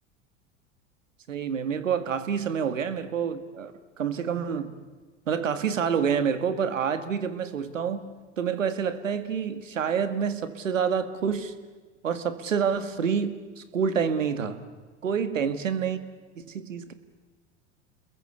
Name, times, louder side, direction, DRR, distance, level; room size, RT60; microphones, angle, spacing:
voice 1, 1.3-3.7 4.0-4.7 5.3-8.0 8.4-11.5 12.0-14.6 15.0-16.0 16.5-16.9, right 7 dB, 90° right, 11 dB, 2.1 m, -27 dB
29.0 x 21.5 x 8.2 m, 1.4 s
hypercardioid pair, 85°, 38 cm